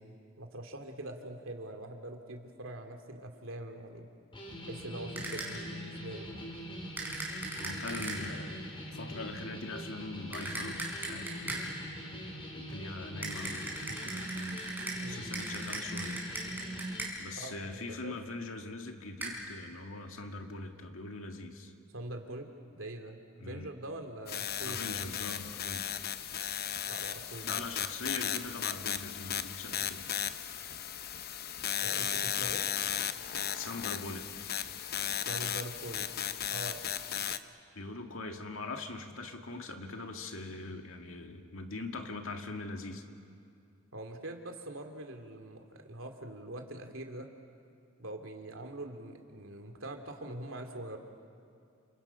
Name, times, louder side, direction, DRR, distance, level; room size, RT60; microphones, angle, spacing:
voice 1, 0.0-4.1 4.7-6.4 15.0-15.3 17.4-17.5 18.0-18.1 21.9-25.1 26.9-27.6 31.8-32.7 35.3-36.1 36.5-36.8 43.9-47.3 48.0-51.0, right 1 dB, 75° right, 4 dB, 2.5 m, -43 dB
sound 1, 4.3-17.1, equal, 25° left, 3.6 m, -42 dB
sound 2, 5.2-5.7 7.0-8.4 10.3-11.9 13.2-17.4 19.2-19.3, right 2 dB, 10° right, 5.3 m, -39 dB
voice 2, 7.6-8.6 8.9-11.7 12.5-14.7 15.1-16.2 17.2-21.7 23.4-23.7 24.6-26.1 27.4-30.1 33.5-34.6 37.7-43.0, left 3 dB, 85° left, 4 dB, 2.0 m, -42 dB
sound 3, 24.3-37.4, left 10 dB, 50° left, 0.8 m, -35 dB
29.5 x 27.5 x 5.7 m, 2.5 s
head